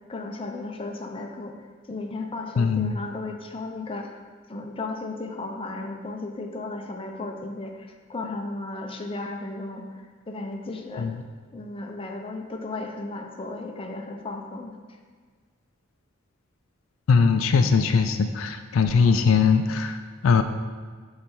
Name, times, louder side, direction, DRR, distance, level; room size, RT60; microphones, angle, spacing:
voice 1, 0.1-1.5 1.8-4.2 4.5-11.1 11.5-14.8, left 2 dB, 25° left, 2 dB, 0.5 m, -35 dB
voice 2, 2.6-2.9 11.0-11.1 17.1-20.4, left 5 dB, 80° left, 8 dB, 0.4 m, -21 dB
7.0 x 3.3 x 4.5 m, 1.5 s
head